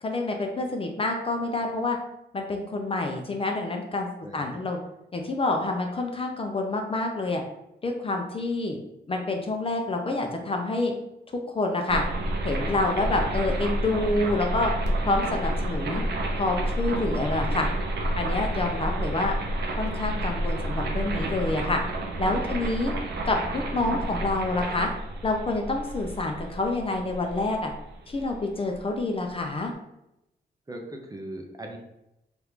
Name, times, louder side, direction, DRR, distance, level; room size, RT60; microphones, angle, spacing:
voice 1, 0.0-2.0 2.3-4.1 4.3-4.8 5.1-7.4 7.8-8.8 9.1-10.9 11.5-12.0 12.4-14.7 15.0-16.0 16.4-17.7 18.2-19.3 19.8-21.8 22.2-22.9 23.3-24.9 25.2-27.7 28.1-29.7, left 2 dB, 30° left, 3 dB, 0.4 m, -27 dB
voice 2, 4.2-4.6 18.8-19.0 23.1-23.2 23.6-23.7 30.7-31.8, right 1 dB, 20° right, 1 dB, 0.5 m, -41 dB
sound 1, 11.9-28.8, right 1 dB, 70° right, 0.6 m, -30 dB
2.9 x 2.4 x 3.4 m, 0.88 s
wide cardioid pair, 115°, 18 cm